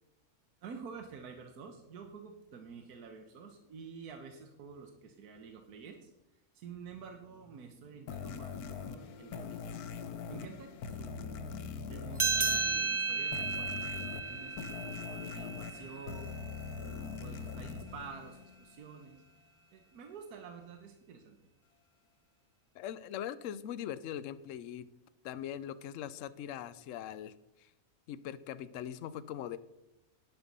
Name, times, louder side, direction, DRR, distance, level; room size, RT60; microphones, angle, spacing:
voice 1, 0.6-6.1 6.5-9.7 10.3-11.5 11.9-16.4 16.8-19.2 19.7-21.4, right 5 dB, 85° right, 5 dB, 1.6 m, -49 dB
sound 1, 8.1-18.9, left 6 dB, 80° left, 1.3 m, -42 dB
sound 2, 12.2-17.1, right 4 dB, 25° right, 0.7 m, -34 dB
voice 2, 22.7-24.9 25.2-27.7 28.1-29.6, left 10 dB, 65° left, 16 dB, 0.9 m, -41 dB
11.0 x 8.1 x 5.4 m, 0.90 s
omnidirectional pair, 1.6 m